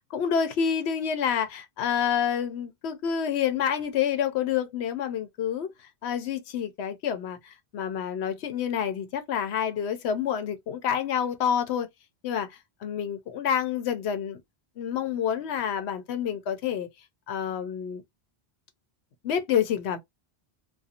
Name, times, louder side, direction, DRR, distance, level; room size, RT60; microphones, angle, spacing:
voice 1, 0.1-5.7 6.0-11.9 12.2-12.5 12.8-14.4 14.8-16.9 17.3-18.0 19.2-20.0, left 8 dB, 80° left, 0.9 m, -28 dB
2.5 x 2.3 x 2.7 m
omnidirectional pair, 1.1 m